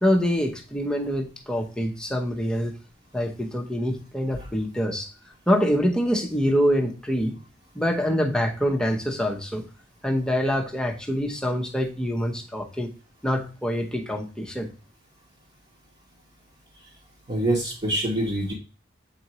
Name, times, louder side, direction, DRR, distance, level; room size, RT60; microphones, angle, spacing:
voice 1, 0.0-2.7 3.1-5.1 5.5-7.4 7.7-9.6 10.0-12.9 13.2-14.7, equal, 5° left, 2 dB, 0.8 m, -25 dB
voice 2, 17.3-18.5, right 1 dB, 35° right, -4 dB, 1.2 m, -25 dB
7.4 x 4.3 x 3.0 m, 0.34 s
head